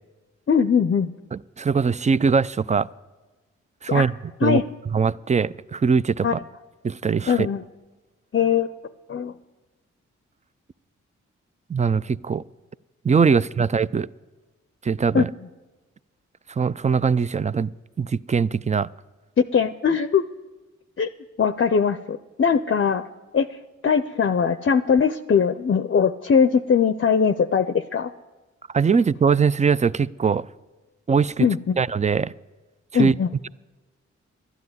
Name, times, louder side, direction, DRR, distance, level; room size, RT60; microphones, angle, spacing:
voice 1, 0.5-1.1 3.9-4.0 4.4-4.6 6.2-6.3 7.3-7.6 8.3-8.7 9.1-9.3 15.1-15.2 19.5-20.2 21.0-21.1 21.4-23.0 23.3-23.5 23.8-28.1 31.4-31.8 32.9-33.3, left 6 dB, 40° left, 12 dB, 0.6 m, -20 dB
voice 2, 1.3-2.9 3.8-4.1 4.4-4.6 4.9-6.4 6.8-7.5 11.7-12.4 13.0-14.1 14.8-15.3 16.5-17.7 18.0-18.9 28.7-30.5 31.1-31.5 31.8-32.3 32.9-33.2, right 5 dB, 25° right, 18 dB, 0.4 m, -21 dB
12.0 x 9.8 x 9.5 m, 1.2 s
cardioid pair, 50°, 30 cm